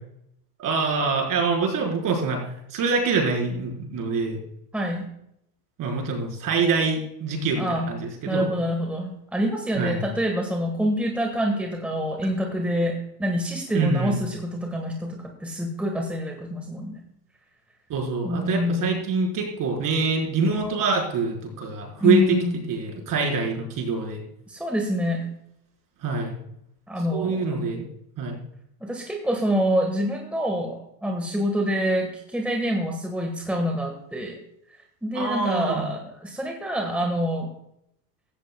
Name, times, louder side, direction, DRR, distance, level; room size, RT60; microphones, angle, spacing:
voice 1, 0.6-2.4 2.7-4.4 5.8-8.4 9.7-10.0 13.7-14.2 17.9-22.2 22.7-24.2 26.0-26.4 27.1-27.9 28.2-28.4 35.1-35.9, right 4 dB, 40° right, 0 dB, 4.6 m, -25 dB
voice 2, 4.7-5.1 7.6-7.9 8.3-17.0 18.2-18.9 22.0-22.6 24.5-25.2 26.9-27.7 28.8-34.4 35.0-37.5, equal, 5° right, 2 dB, 1.6 m, -26 dB
16.0 x 13.5 x 2.3 m, 0.76 s
supercardioid pair, 120°, 50 cm